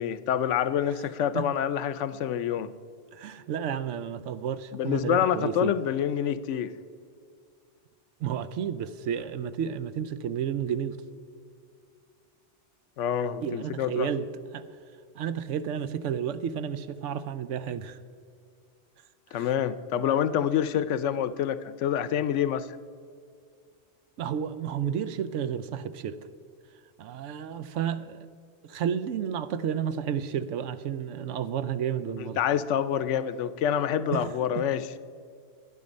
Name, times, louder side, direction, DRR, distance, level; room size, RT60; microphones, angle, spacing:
voice 1, 0.0-2.7 4.7-6.8 13.0-14.1 19.3-22.7 32.2-34.9, left 9 dB, 80° left, 15 dB, 0.9 m, -27 dB
voice 2, 3.1-5.7 8.2-11.0 13.4-14.3 14.5-14.6 15.2-18.0 19.4-19.5 24.2-26.2 27.0-28.3 28.6-32.4 34.1-34.3 34.5-34.6, right 8 dB, 85° right, 13 dB, 1.0 m, -31 dB
12.0 x 10.5 x 5.3 m, 2.3 s
omnidirectional pair, 1.2 m